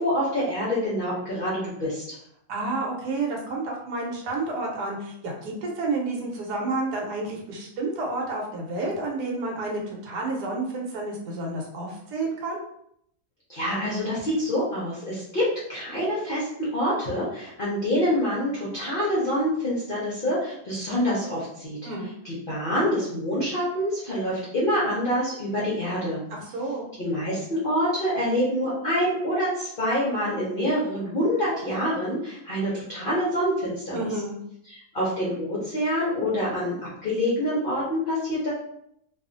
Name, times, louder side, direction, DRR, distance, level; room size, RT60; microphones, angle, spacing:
voice 1, 0.0-2.2 13.5-21.8 22.2-26.2 27.0-34.0 34.7-38.5, equal, 55° left, -7 dB, 0.6 m, -26 dB
voice 2, 2.5-12.6 21.8-22.1 26.3-26.9 33.9-34.4, right 2 dB, 85° right, -1 dB, 1.2 m, -30 dB
2.7 x 2.4 x 2.5 m, 0.73 s
omnidirectional pair, 1.7 m